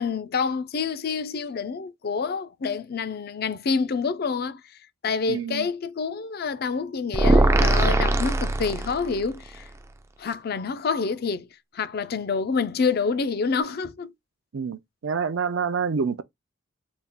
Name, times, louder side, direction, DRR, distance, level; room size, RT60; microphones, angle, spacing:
voice 1, 0.0-4.6 5.0-9.7 10.2-11.5 11.7-14.1, left 5 dB, 50° left, 0.5 m, -27 dB
voice 2, 5.3-5.7 14.5-16.2, right 5 dB, 70° right, 0.5 m, -27 dB
sound 1, 7.1-9.3, right 2 dB, 15° right, 0.3 m, -20 dB
4.1 x 2.3 x 3.5 m
head